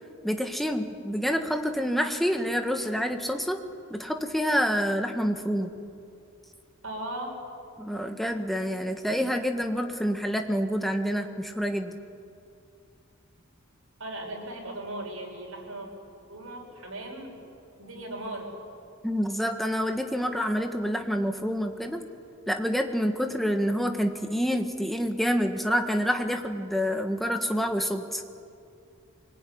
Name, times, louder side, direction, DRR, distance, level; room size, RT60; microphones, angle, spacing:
voice 1, 0.2-3.6 3.9-5.7 7.8-12.0 19.0-22.0 22.5-28.2, equal, ahead, 5 dB, 1.6 m, -27 dB
voice 2, 6.8-7.4 14.0-15.9 16.3-17.4 17.8-18.5, right 1 dB, 90° right, 0 dB, 6.6 m, -37 dB
24.5 x 20.0 x 9.7 m, 2.4 s
head